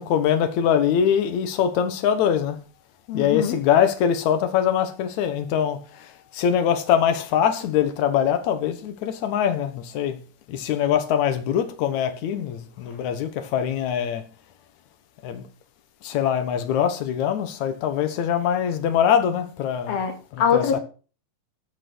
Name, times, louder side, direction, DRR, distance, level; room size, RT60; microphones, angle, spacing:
voice 1, 0.0-2.6 3.1-10.2 10.5-14.2 15.2-15.4 16.0-20.0 20.3-20.8, left 9 dB, 60° left, 2.4 m, -23 dB
voice 2, 3.1-3.6 12.3-12.4 19.9-20.8, left 7 dB, 80° left, 4.0 m, -24 dB
12.5 x 6.0 x 6.2 m
omnidirectional pair, 4.2 m